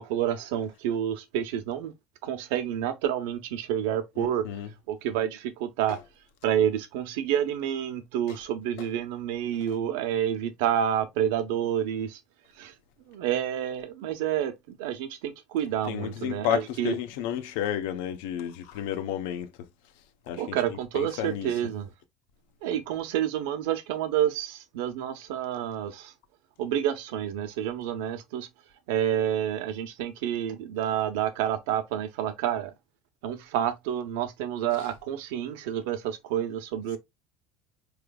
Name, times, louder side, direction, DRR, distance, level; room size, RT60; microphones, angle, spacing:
voice 1, 0.0-1.9 2.2-4.5 4.9-6.0 6.4-12.2 12.6-12.7 13.1-17.0 20.4-21.9 22.6-26.1 26.6-28.5 28.9-32.7 33.2-37.0, right 10 dB, 75° right, 0.8 m, -29 dB
voice 2, 4.2-4.7 5.9-6.0 8.8-8.9 15.8-19.7 20.3-21.5, left 10 dB, 70° left, 0.7 m, -32 dB
4.9 x 3.2 x 2.2 m
cardioid pair, 175°, 0 cm